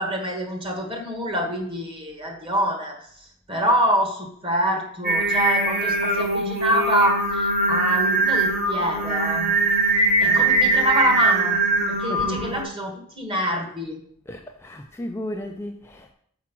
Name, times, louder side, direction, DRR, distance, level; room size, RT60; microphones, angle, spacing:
voice 1, 0.0-9.6 10.2-11.6 11.9-14.0, equal, 25° right, 2 dB, 1.4 m, -25 dB
Singing, 5.0-12.6, right 2 dB, 45° right, 1.6 m, -21 dB
voice 2, 10.2-10.6 12.1-12.6 14.3-16.1, left 1 dB, 10° left, 2 dB, 0.4 m, -34 dB
6.1 x 4.8 x 5.9 m, 0.64 s
head